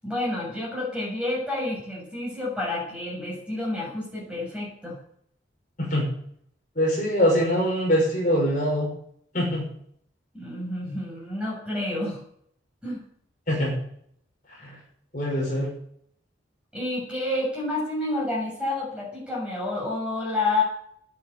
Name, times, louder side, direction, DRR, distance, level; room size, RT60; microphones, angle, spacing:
voice 1, 0.0-5.0 10.3-12.2 12.8-13.0 16.7-20.6, left 2 dB, 5° right, -4 dB, 7.1 m, -29 dB
voice 2, 6.8-8.9 9.3-9.7 13.5-13.8 14.6-14.8 15.1-15.7, equal, 40° left, -3 dB, 6.1 m, -23 dB
11.0 x 10.5 x 9.5 m, 0.68 s
head